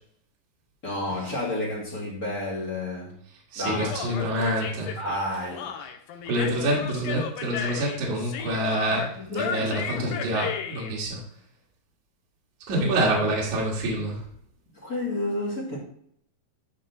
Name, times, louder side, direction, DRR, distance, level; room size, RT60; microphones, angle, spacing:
voice 1, 0.8-3.2 3.6-3.9 5.0-5.7 8.9-10.3 14.7-15.8, left 1 dB, 30° left, -4 dB, 1.9 m, -31 dB
voice 2, 3.5-5.0 6.3-11.2 12.7-14.2, right 1 dB, 60° right, -3 dB, 3.1 m, -27 dB
Human voice, 3.6-10.9, left 7 dB, 80° left, 2.6 m, -34 dB
12.5 x 4.3 x 4.0 m, 0.68 s
omnidirectional pair, 4.1 m